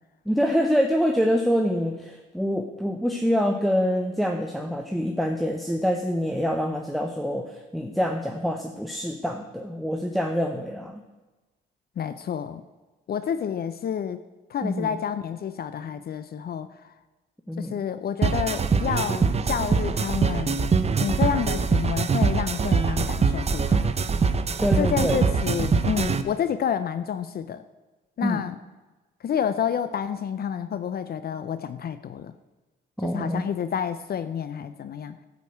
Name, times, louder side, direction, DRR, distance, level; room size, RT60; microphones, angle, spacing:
voice 1, 0.3-11.0 14.6-15.0 17.5-17.8 24.6-25.2 28.2-28.5 33.0-33.4, equal, ahead, 4 dB, 0.9 m, -26 dB
voice 2, 12.0-12.6 13.1-14.2 14.5-16.7 17.6-20.6 21.0-23.8 24.8-27.6 28.2-28.6 29.2-32.3 33.1-35.1, left 8 dB, 50° left, 12 dB, 0.6 m, -29 dB
sound 1, 18.2-26.2, right 5 dB, 30° right, 0.7 m, -23 dB
13.0 x 5.3 x 7.9 m, 1.2 s
cardioid pair, 90°, 20 cm